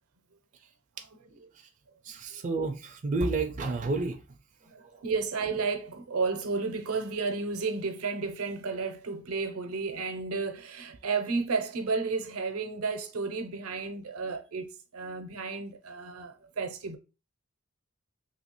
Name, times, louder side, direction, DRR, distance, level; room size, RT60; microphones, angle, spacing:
voice 1, 1.1-1.5 2.3-2.4 4.6-17.0, right 4 dB, 85° right, 0.6 m, -32 dB
voice 2, 2.0-4.2, right 3 dB, 35° right, 0.4 m, -30 dB
3.1 x 2.8 x 3.0 m
head